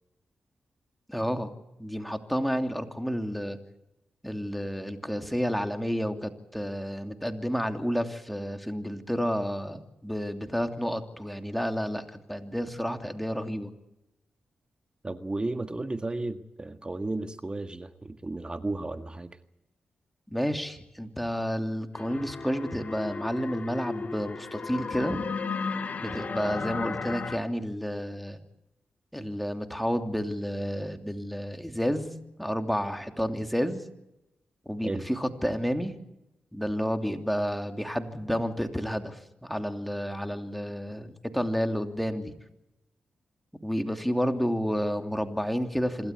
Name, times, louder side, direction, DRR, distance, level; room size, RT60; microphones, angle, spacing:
voice 1, 1.1-1.5 1.8-3.6 4.2-13.7 20.3-25.2 26.0-28.4 29.1-32.1 32.4-33.8 34.7-35.9 36.5-42.3 43.6-46.1, equal, ahead, 6 dB, 2.9 m, -30 dB
voice 2, 15.0-19.4 34.8-35.1, right 2 dB, 25° right, 9 dB, 1.7 m, -33 dB
sound 1, 21.9-27.4, left 4 dB, 50° left, 1.8 m, -34 dB
26.5 x 12.5 x 9.7 m, 0.89 s
cardioid pair, 50°, 3 cm